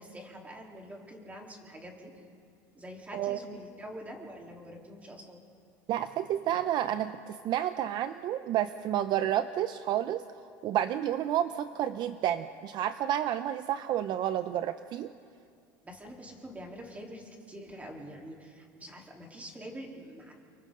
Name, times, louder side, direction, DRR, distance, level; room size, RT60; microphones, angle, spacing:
voice 1, 0.0-2.2 2.7-5.4 15.8-20.3, equal, 15° right, -1 dB, 3.6 m, -45 dB
voice 2, 5.9-10.2 10.6-15.1, right 11 dB, 50° right, 11 dB, 0.6 m, -30 dB
30.0 x 23.5 x 3.8 m, 2.4 s
supercardioid pair, 115°, 9 cm